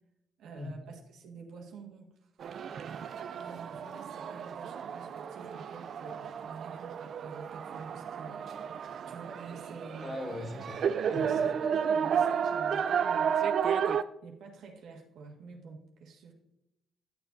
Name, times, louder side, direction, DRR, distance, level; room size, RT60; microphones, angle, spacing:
voice 1, 0.4-2.3 3.4-8.8 9.1-10.2 11.2-13.7 14.2-16.3, right 4 dB, 80° right, 1 dB, 1.6 m, -48 dB
sound 1, 2.4-14.0, right 7 dB, 60° right, 0.4 m, -32 dB
voice 2, 10.0-11.4, left 2 dB, 35° left, 1 dB, 2.5 m, -40 dB
11.0 x 7.1 x 2.6 m, 0.86 s
cardioid pair, 90°, 0 cm